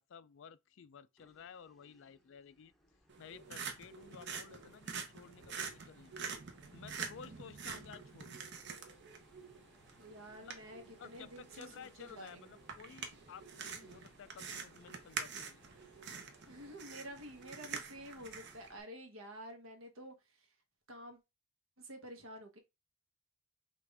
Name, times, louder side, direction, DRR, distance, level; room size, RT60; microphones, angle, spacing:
voice 1, 0.0-2.7 3.2-6.1 6.7-8.4 10.4-10.6 10.9-15.6, left 7 dB, 60° left, 0.4 m, -54 dB
sound 1, 1.2-18.8, equal, ahead, 0.7 m, -67 dB
sound 2, 3.1-18.7, right 6 dB, 55° right, 0.9 m, -47 dB
voice 2, 10.0-12.6 16.5-20.5 20.9-21.2 21.8-22.6, equal, 70° right, 1.2 m, -50 dB
5.9 x 2.5 x 3.4 m
head